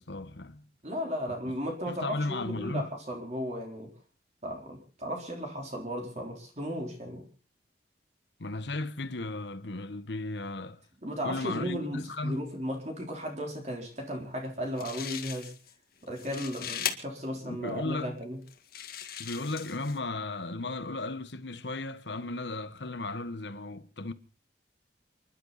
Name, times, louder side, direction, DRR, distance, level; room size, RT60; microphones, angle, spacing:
voice 1, 0.0-0.6 1.5-1.6 1.9-2.9 8.4-10.8 11.2-12.4 17.3-18.2 19.2-24.1, left 2 dB, 70° left, 1.2 m, -35 dB
voice 2, 0.8-3.9 4.4-7.2 11.0-15.5 16.0-18.4, equal, 40° right, 3.8 m, -35 dB
sound 1, 14.4-14.5 14.8-15.7 16.1-16.9 17.7-17.8 18.5-20.0, left 9 dB, 55° left, 2.0 m, -38 dB
29.5 x 11.5 x 4.1 m
head